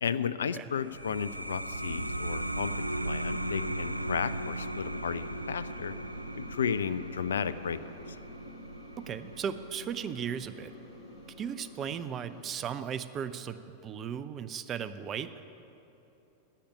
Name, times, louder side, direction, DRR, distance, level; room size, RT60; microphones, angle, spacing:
voice 1, 0.0-5.9 6.3-7.8 8.1-8.2, left 7 dB, 65° left, 14 dB, 0.4 m, -33 dB
sound 1, 0.7-11.9, right 1 dB, 85° right, 0.3 m, -38 dB
sound 2, 3.4-12.5, left 1 dB, 45° left, 2.3 m, -51 dB
voice 2, 9.0-10.7 11.4-15.3, right 8 dB, 30° right, 12 dB, 0.5 m, -36 dB
10.0 x 8.6 x 9.8 m, 3.0 s
figure-of-eight pair, 90°, 0 cm